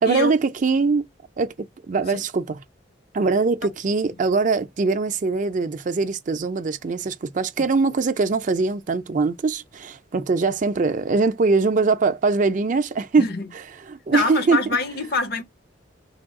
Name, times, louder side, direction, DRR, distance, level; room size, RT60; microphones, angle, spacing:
voice 1, 0.0-1.0 1.4-2.6 3.1-13.2 13.9-14.6, right 4 dB, 40° right, 0.4 m, -22 dB
voice 2, 13.2-13.5 14.1-15.4, left 3 dB, 50° left, 0.6 m, -25 dB
3.4 x 2.3 x 3.6 m
head